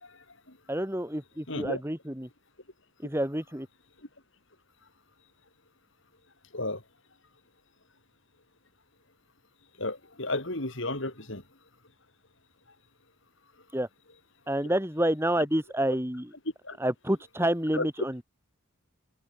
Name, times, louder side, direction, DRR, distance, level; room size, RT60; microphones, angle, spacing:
voice 1, 0.7-2.3 3.0-3.7 13.7-13.9 14.5-16.3 16.8-18.2, right 1 dB, 10° right, 3.3 m, -28 dB
voice 2, 1.5-1.8 6.5-6.8 9.8-11.4 16.6-16.8 17.7-17.9, left 2 dB, 60° left, 4.9 m, -33 dB
head